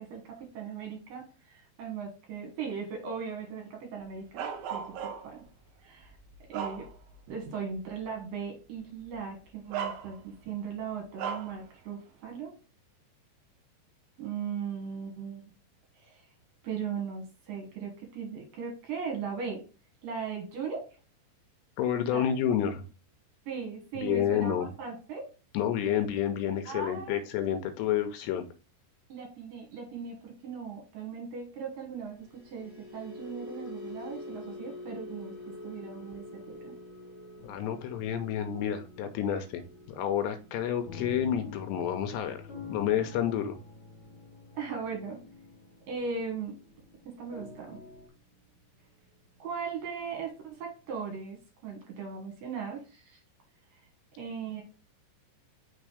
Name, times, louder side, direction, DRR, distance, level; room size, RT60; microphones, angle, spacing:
voice 1, 0.0-5.4 5.8-6.1 6.5-6.9 7.3-12.5 14.2-15.4 16.0-16.2 16.6-19.6 20.0-20.9 22.0-22.3 23.5-25.3 26.7-27.2 29.1-36.7 44.6-45.2 45.9-46.5 47.2-47.8 49.4-51.4 51.6-53.2 54.2-54.6, right 6 dB, 60° right, 1 dB, 2.7 m, -38 dB
Bark, 4.4-5.4 6.0-7.3 7.7-7.9 9.0-9.1 9.7-10.5 11.2-11.6, right 7 dB, 85° right, 2.1 m, -37 dB
voice 2, 21.8-22.9 24.0-24.7 25.5-28.4 37.4-39.6 39.9-42.4 42.7-43.6, left 9 dB, 80° left, 8 dB, 2.7 m, -29 dB
sound 1, 32.1-48.5 48.8-49.1 49.5-49.7, left 2 dB, 30° right, 2.0 m, -48 dB
sound 2, 37.4-48.1, left 5 dB, 55° left, 1.5 m, -48 dB
6.0 x 3.6 x 4.9 m, 0.33 s
omnidirectional pair, 5.0 m